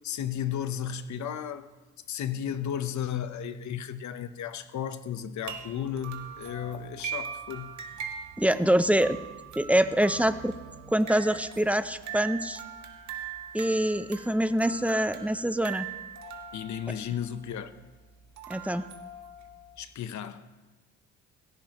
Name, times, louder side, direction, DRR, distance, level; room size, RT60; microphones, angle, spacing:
voice 1, 0.0-1.7 2.1-7.7 16.5-17.7 19.8-20.5, left 9 dB, 70° left, 1.0 m, -34 dB
sound 1, 5.4-19.8, right 7 dB, 70° right, 1.5 m, -42 dB
voice 2, 8.4-9.2 9.6-10.5 10.9-12.6 13.5-15.9 18.5-18.9, right 1 dB, 5° right, 0.6 m, -25 dB
18.5 x 16.5 x 3.0 m
cardioid pair, 90°, 30 cm